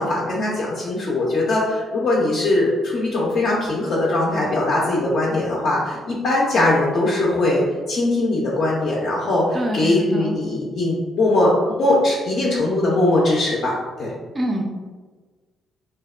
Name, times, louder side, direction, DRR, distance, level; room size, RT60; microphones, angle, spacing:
voice 1, 0.0-11.5 11.8-13.7 14.0-14.1, left 2 dB, 50° left, -4 dB, 0.4 m, -20 dB
voice 2, 9.5-10.4 14.3-14.6, equal, 20° right, 2 dB, 0.3 m, -25 dB
2.7 x 2.1 x 2.3 m, 1.4 s
cardioid pair, 150°, 0 cm